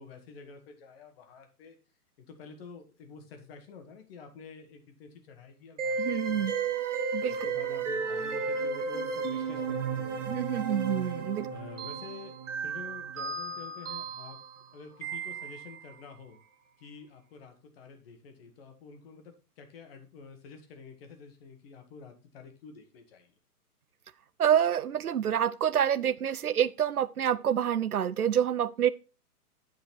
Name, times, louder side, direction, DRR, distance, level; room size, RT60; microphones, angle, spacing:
voice 1, 0.0-1.8 2.2-6.8 7.3-10.4 11.4-14.4 14.7-16.4 16.8-23.3, left 5 dB, 40° left, 1.9 m, -49 dB
sound 1, 5.8-15.9, right 5 dB, 50° right, 1.4 m, -34 dB
voice 2, 6.0-6.5 7.1-7.4 10.3-11.5 24.4-28.9, right 9 dB, 75° right, 0.6 m, -27 dB
9.2 x 5.1 x 4.4 m
figure-of-eight pair, 120°, 46 cm